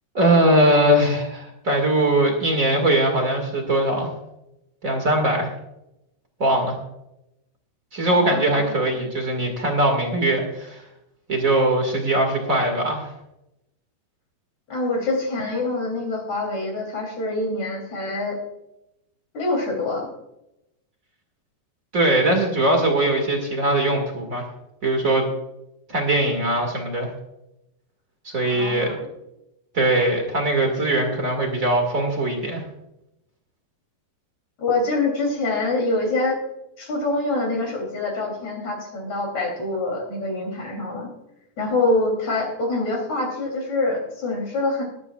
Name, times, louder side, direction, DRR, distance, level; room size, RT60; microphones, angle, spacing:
voice 1, 0.1-4.1 4.8-5.5 6.4-6.8 7.9-10.8 11.3-13.1 21.9-24.5 24.8-25.3 25.9-27.1 28.2-28.9 29.7-32.6, right 1 dB, 40° right, 3 dB, 1.1 m, -21 dB
voice 2, 8.1-8.8 14.7-18.4 19.3-20.1 28.5-28.9 34.6-36.4 36.8-41.1 41.6-44.8, left 2 dB, 40° left, 1 dB, 4.2 m, -25 dB
21.0 x 11.0 x 2.4 m, 0.87 s
omnidirectional pair, 4.9 m